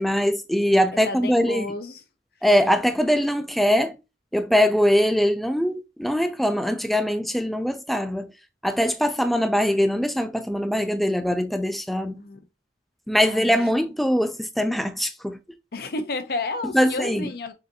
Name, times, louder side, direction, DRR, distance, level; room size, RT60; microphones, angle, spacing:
voice 1, 0.0-1.7 2.4-4.0 4.3-8.3 8.6-12.2 13.1-15.4 16.7-17.3, equal, ahead, 0.3 m, -22 dB
voice 2, 0.9-2.0 12.1-12.4 13.3-13.6 15.7-17.5, left 3 dB, 55° left, 0.6 m, -31 dB
6.3 x 2.6 x 2.7 m
head